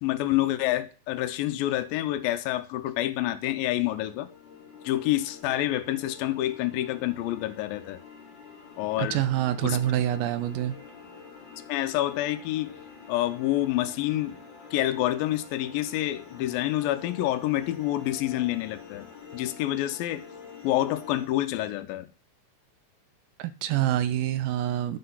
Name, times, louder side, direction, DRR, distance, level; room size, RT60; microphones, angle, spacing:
voice 1, 0.0-4.3 4.8-8.0 8.8-9.2 9.6-9.8 11.7-12.8 13.1-14.4 14.7-20.2 20.6-22.1, left 14 dB, 90° left, 2.4 m, -28 dB
sound 1, 3.8-21.3, left 6 dB, 55° left, 2.6 m, -47 dB
voice 2, 9.0-10.8 23.4-25.0, right 12 dB, 80° right, 2.3 m, -26 dB
11.0 x 3.8 x 5.6 m
omnidirectional pair, 4.0 m